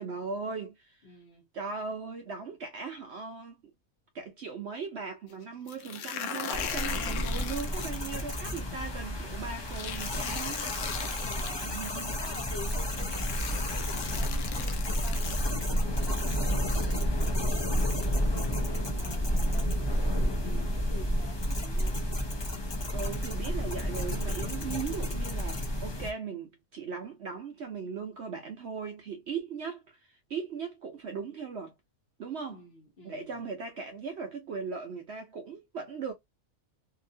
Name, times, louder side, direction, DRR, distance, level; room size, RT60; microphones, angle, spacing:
voice 1, 0.0-1.1 1.5-3.6 4.1-10.6 11.6-12.1 22.9-31.7 32.2-32.6 33.0-36.1, right 5 dB, 60° right, 0.8 m, -38 dB
voice 2, 1.0-1.4 11.2-15.7 15.9-17.8 18.1-22.1 32.5-33.3, left 1 dB, 45° left, 1.1 m, -48 dB
sound 1, 5.7-8.2 9.7-11.5 12.5-12.6 13.1-15.5, left 8 dB, 85° left, 1.1 m, -38 dB
sound 2, 6.5-26.1, equal, 30° left, 0.4 m, -30 dB
2.9 x 2.6 x 2.6 m
omnidirectional pair, 1.5 m